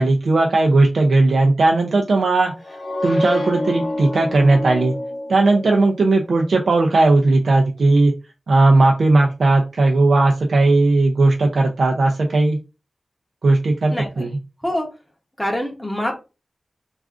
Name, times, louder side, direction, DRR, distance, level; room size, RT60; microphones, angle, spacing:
voice 1, 0.0-2.5 3.0-5.0 5.3-8.1 8.5-12.6 13.4-14.3, right 2 dB, 80° right, 1 dB, 0.4 m, -16 dB
sound 1, 2.6-6.2, left 1 dB, 60° left, 0.6 m, -27 dB
voice 2, 13.9-14.3 14.6-14.9 15.4-16.2, left 1 dB, 5° left, 0 dB, 0.6 m, -25 dB
2.4 x 2.4 x 3.4 m, 0.29 s
wide cardioid pair, 120°, 0 cm